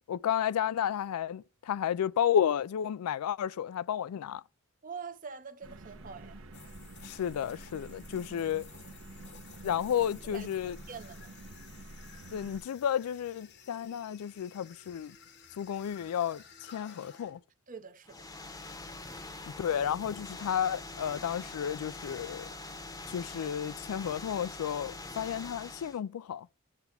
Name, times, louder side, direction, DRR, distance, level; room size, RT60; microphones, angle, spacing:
voice 1, 0.1-4.4 7.0-8.6 9.6-10.8 12.3-15.2 15.6-17.4 19.5-22.5 23.1-26.5, left 9 dB, 85° left, 0.3 m, -32 dB
voice 2, 4.8-6.4 8.1-8.3 10.3-10.5 10.9-11.3 17.7-18.3, right 5 dB, 35° right, 0.7 m, -45 dB
sound 1, 5.6-12.6, right 2 dB, 65° right, 1.0 m, -49 dB
sound 2, 6.5-17.4, left 7 dB, 50° left, 0.9 m, -55 dB
sound 3, 18.0-26.0, left 2 dB, 15° left, 0.8 m, -44 dB
9.0 x 3.5 x 5.6 m
head